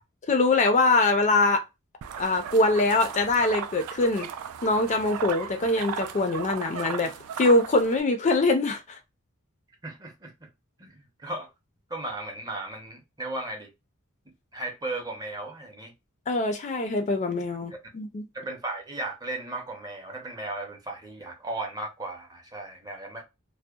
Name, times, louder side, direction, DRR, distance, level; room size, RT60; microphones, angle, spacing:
voice 1, 0.3-1.6 2.2-4.3 4.6-9.0 16.3-18.3, left 2 dB, 35° left, 0.4 m, -23 dB
sound 1, 2.0-8.0, right 8 dB, 85° right, 0.3 m, -36 dB
voice 2, 9.8-10.3 10.8-11.5 11.9-13.7 14.5-15.9 18.3-23.2, right 2 dB, 20° right, 0.6 m, -36 dB
2.7 x 2.0 x 2.2 m
head